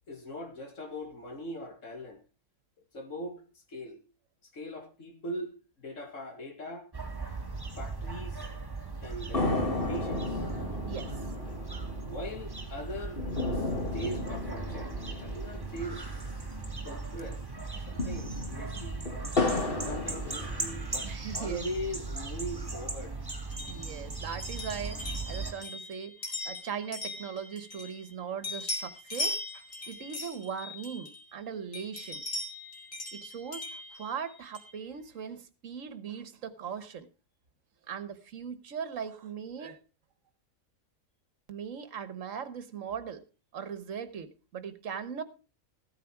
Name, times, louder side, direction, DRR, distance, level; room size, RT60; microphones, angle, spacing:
voice 1, 0.1-2.2 2.9-4.0 4.5-6.9 7.7-8.5 9.0-10.5 12.0-13.2 13.5-16.5 16.8-17.4 17.9-19.1 19.8-23.2, equal, 65° left, 2.6 m, -41 dB
sound 1, 6.9-25.5, right 3 dB, 15° right, 1.8 m, -38 dB
sound 2, 9.3-16.9 17.2-17.3 17.8-21.1 21.6-22.6, left 2 dB, 40° left, 2.2 m, -34 dB
voice 2, 21.0-21.7 23.7-32.2 33.1-37.1 37.9-39.8 41.5-43.2 43.5-45.2, right 7 dB, 65° right, 1.5 m, -39 dB
sound 3, 23.5-28.1 28.4-31.4 31.7-34.8, left 2 dB, 85° left, 3.4 m, -39 dB
15.0 x 9.2 x 4.6 m
omnidirectional pair, 1.4 m